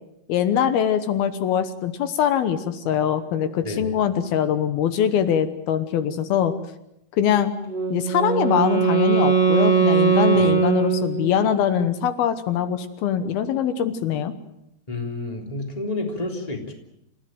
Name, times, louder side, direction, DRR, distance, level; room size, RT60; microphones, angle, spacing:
voice 1, 0.3-6.5 7.2-7.5 7.9-14.3, left 9 dB, 80° left, 11 dB, 3.0 m, -23 dB
Wind instrument woodwind instrument, 7.7-11.6, right 6 dB, 15° right, 2.7 m, -20 dB
voice 2, 14.9-16.7, left 2 dB, 10° left, 3 dB, 3.1 m, -30 dB
28.0 x 16.0 x 9.2 m, 0.80 s
omnidirectional pair, 4.4 m